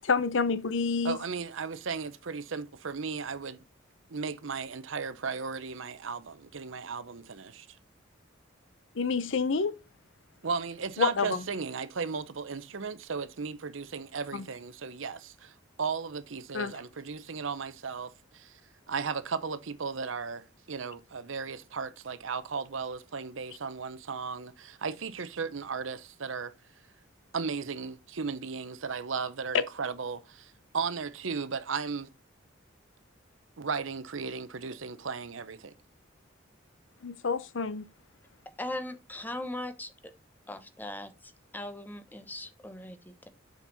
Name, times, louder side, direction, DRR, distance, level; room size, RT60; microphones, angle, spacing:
voice 1, 0.0-1.2 9.0-9.7 11.0-11.4 14.3-14.5 16.5-16.7 37.0-37.8, left 4 dB, 65° left, 0.7 m, -28 dB
voice 2, 1.0-3.6 4.1-7.7 10.4-15.5 15.8-18.5 18.9-26.5 27.3-32.1 33.6-35.7, right 5 dB, 75° right, 0.7 m, -35 dB
voice 3, 38.6-40.1 40.5-43.3, left 1 dB, 10° left, 0.9 m, -39 dB
7.4 x 5.3 x 4.0 m
head